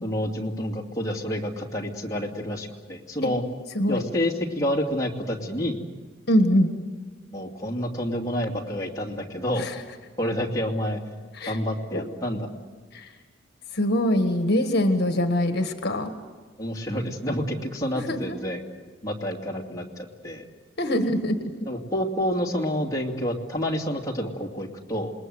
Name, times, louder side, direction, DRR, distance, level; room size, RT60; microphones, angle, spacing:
voice 1, 0.0-3.4 3.9-5.8 7.3-9.7 10.2-11.0 11.5-12.5 16.6-18.6 19.0-20.5 21.6-25.1, equal, 20° left, -1 dB, 2.5 m, -28 dB
voice 2, 6.3-6.7 9.6-9.7 11.4-11.6 12.9-13.0 13.7-16.1 18.1-18.4 20.8-21.4, equal, 60° left, 7 dB, 1.6 m, -23 dB
28.0 x 20.5 x 7.9 m, 1.4 s
head